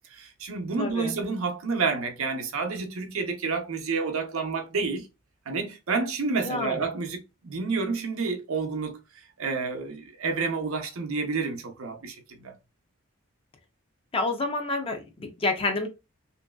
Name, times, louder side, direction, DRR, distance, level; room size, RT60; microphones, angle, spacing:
voice 1, 0.1-5.1 5.5-9.0 9.4-12.6, right 4 dB, 75° right, 0.6 m, -29 dB
voice 2, 0.8-1.2 6.4-6.8 14.1-15.9, left 2 dB, 25° left, 0.4 m, -28 dB
3.0 x 2.6 x 2.2 m
head